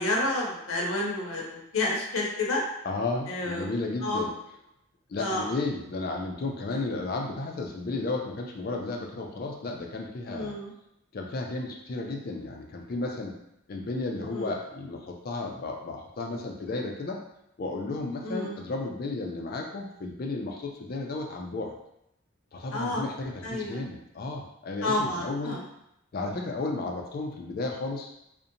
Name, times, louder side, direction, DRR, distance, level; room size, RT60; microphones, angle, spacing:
voice 1, 0.0-2.6 3.3-3.7 4.0-4.3 5.2-5.5 10.3-10.7 14.3-14.5 18.2-18.6 22.7-23.0 23.4-23.8 24.8-25.6, left 2 dB, 80° left, -2 dB, 0.7 m, -30 dB
voice 2, 2.8-4.3 5.1-10.6 11.1-13.4 13.7-17.2 17.6-21.7 22.5-25.6 26.1-28.1, left 3 dB, 45° left, 1 dB, 0.4 m, -33 dB
2.7 x 2.1 x 2.5 m, 0.82 s
head